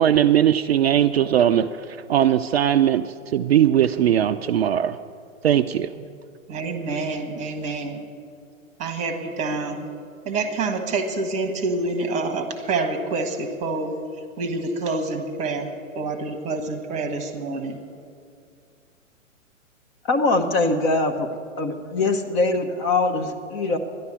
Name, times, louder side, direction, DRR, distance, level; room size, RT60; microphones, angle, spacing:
voice 1, 0.0-5.0 5.4-5.9, right 10 dB, 50° right, 9 dB, 0.5 m, -19 dB
voice 2, 6.5-8.0 8.8-9.9 10.2-13.9 14.4-15.7 15.9-17.8, right 3 dB, 15° right, 7 dB, 1.2 m, -27 dB
voice 3, 20.1-21.3 21.6-23.8, left 3 dB, 25° left, 5 dB, 0.8 m, -22 dB
12.5 x 11.0 x 7.3 m, 2.3 s
hypercardioid pair, 125°, 40 cm